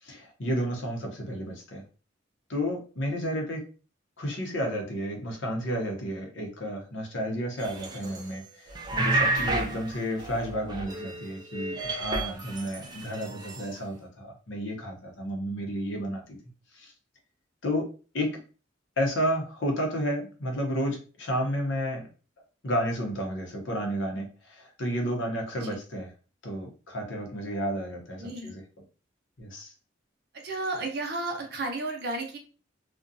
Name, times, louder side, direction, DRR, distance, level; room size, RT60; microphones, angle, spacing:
voice 1, 0.0-1.8 2.5-3.6 4.2-16.4 16.7-16.9 17.6-17.9 18.1-18.3 19.0-22.0 22.6-26.1 26.4-28.6 29.4-29.7, equal, 75° left, 1 dB, 0.8 m, -31 dB
sound 1, 7.6-8.4 8.7-11.3 11.5-13.6, right 2 dB, 20° right, 0.3 m, -31 dB
voice 2, 30.3-32.4, right 2 dB, 55° right, 1 dB, 0.7 m, -33 dB
2.4 x 2.2 x 2.6 m, 0.36 s
head